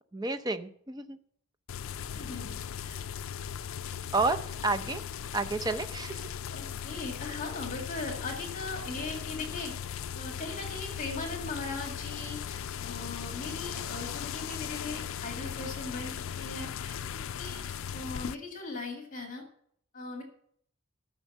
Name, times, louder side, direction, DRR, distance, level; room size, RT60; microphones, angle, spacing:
voice 1, 0.1-1.2 4.1-5.0 5.3-6.3, right 3 dB, 20° right, 8 dB, 0.5 m, -30 dB
sound 1, 1.7-18.4, left 8 dB, 70° left, 0.4 m, -38 dB
voice 2, 2.1-3.0 6.5-9.7 10.1-17.0 17.3-19.4 19.9-20.2, left 3 dB, 35° left, 2 dB, 2.0 m, -39 dB
12.5 x 6.5 x 7.2 m, 0.66 s
head